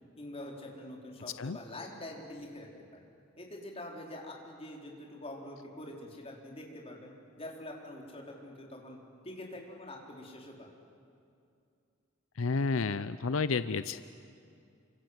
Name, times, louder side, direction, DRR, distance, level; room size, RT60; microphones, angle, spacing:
voice 1, 0.2-2.7 2.9-3.0 3.4-10.7, left 1 dB, 30° left, -1 dB, 4.4 m, -45 dB
voice 2, 12.4-14.0, left 4 dB, 85° left, 13 dB, 0.6 m, -31 dB
28.5 x 25.5 x 8.1 m, 2.4 s
head